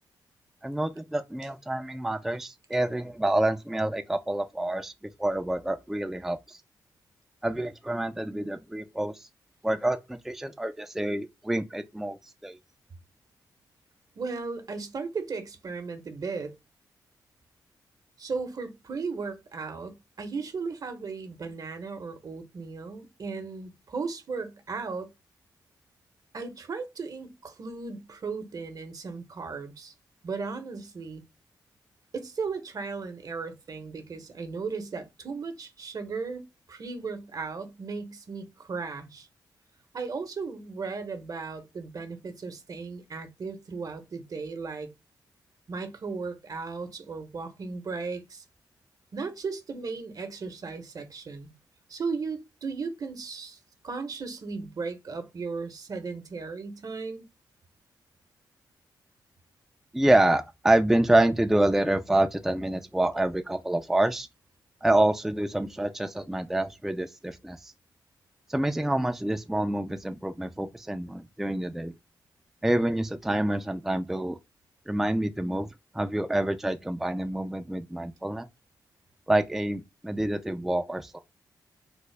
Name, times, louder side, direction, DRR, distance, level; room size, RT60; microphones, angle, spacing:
voice 1, 0.6-4.9 5.2-6.6 7.4-9.3 9.6-12.2 12.4-12.6 59.9-64.3 64.8-67.7 68.5-71.9 72.6-74.4 74.9-75.7 75.9-78.5 79.3-81.2, right 1 dB, 5° right, 0.3 m, -27 dB
voice 2, 14.2-16.5 18.2-25.1 26.3-29.9 30.2-31.2 32.1-36.4 36.7-39.3 39.9-44.9 45.7-48.4 49.1-51.5 51.9-53.6 53.8-57.2, right 4 dB, 55° right, 0.7 m, -36 dB
3.4 x 2.0 x 3.2 m
cardioid pair, 60°, 7 cm